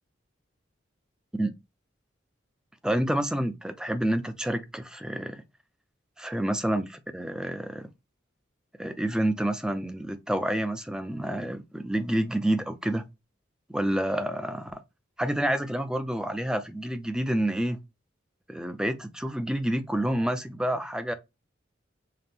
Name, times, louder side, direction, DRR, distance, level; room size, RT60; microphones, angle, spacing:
voice 1, 2.8-5.4 6.2-7.9 8.8-13.1 13.7-14.8 15.2-17.8 18.5-21.1, right 1 dB, 5° right, 0.4 m, -28 dB
5.7 x 2.1 x 3.4 m
head